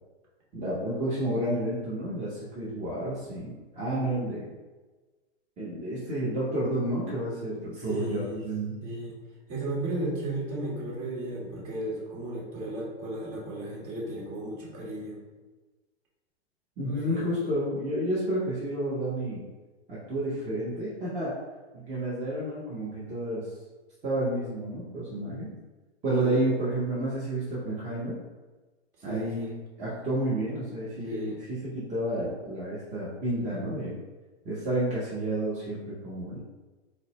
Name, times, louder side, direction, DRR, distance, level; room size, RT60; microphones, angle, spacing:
voice 1, 0.5-4.5 5.6-8.7 16.8-19.4 19.9-21.3 21.7-23.5 24.0-25.5 26.0-28.1 29.0-29.5 29.8-31.4 31.7-33.9 34.4-36.4, right 1 dB, 20° right, -8 dB, 0.8 m, -30 dB
voice 2, 7.7-8.4 8.8-9.1 9.5-15.2 16.8-17.4 26.2-26.4 29.0-29.5 31.1-31.4, right 1 dB, 40° right, -5 dB, 1.5 m, -35 dB
4.0 x 2.1 x 2.9 m, 1.3 s
hypercardioid pair, 105°, 33 cm